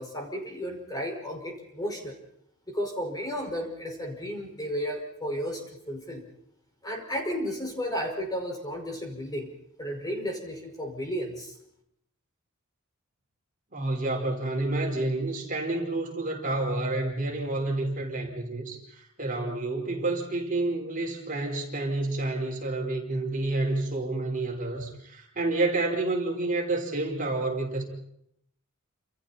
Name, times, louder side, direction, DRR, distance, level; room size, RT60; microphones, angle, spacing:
voice 1, 0.0-2.1 2.7-6.2 6.8-9.5 9.8-11.5, equal, 20° left, 2 dB, 5.4 m, -33 dB
voice 2, 13.7-27.8, right 2 dB, 40° right, 1 dB, 4.9 m, -29 dB
29.5 x 28.0 x 4.4 m, 0.74 s
head